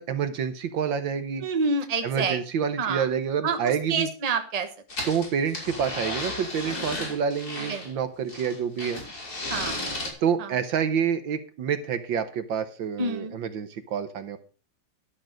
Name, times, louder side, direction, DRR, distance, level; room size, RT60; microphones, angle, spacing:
voice 1, 0.0-1.4 2.0-4.1 5.1-9.0 10.2-14.4, right 7 dB, 65° right, 10 dB, 1.5 m, -28 dB
voice 2, 1.4-2.4 2.8-3.1 3.4-3.6 3.9-4.7 7.7-7.8 9.5-9.8 10.4-10.5 13.0-13.4, right 4 dB, 25° right, 6 dB, 1.0 m, -27 dB
sound 1, 4.9-7.9 8.3-10.1, left 2 dB, 45° left, 3.7 m, -34 dB
11.5 x 6.6 x 6.2 m, 0.37 s
omnidirectional pair, 2.4 m